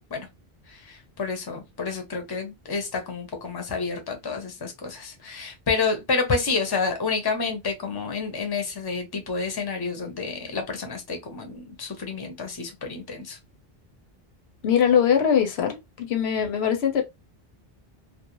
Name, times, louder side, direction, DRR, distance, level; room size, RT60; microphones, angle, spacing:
voice 1, 0.7-13.4, left 4 dB, 30° left, 0.5 m, -29 dB
voice 2, 14.6-17.0, left 8 dB, 90° left, 1.0 m, -22 dB
2.4 x 2.1 x 2.9 m
omnidirectional pair, 1.0 m